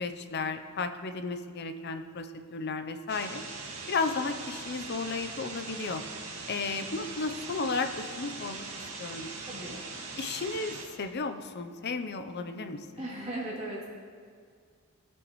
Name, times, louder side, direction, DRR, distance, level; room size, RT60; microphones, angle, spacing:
voice 1, 0.0-9.3 10.2-13.1, left 4 dB, 50° left, 8 dB, 0.6 m, -34 dB
sound 1, 3.1-10.8, right 3 dB, 85° right, 1.8 m, -41 dB
voice 2, 9.5-9.8 13.0-13.9, right 1 dB, 30° right, -7 dB, 3.0 m, -37 dB
18.0 x 7.8 x 3.1 m, 2.1 s
head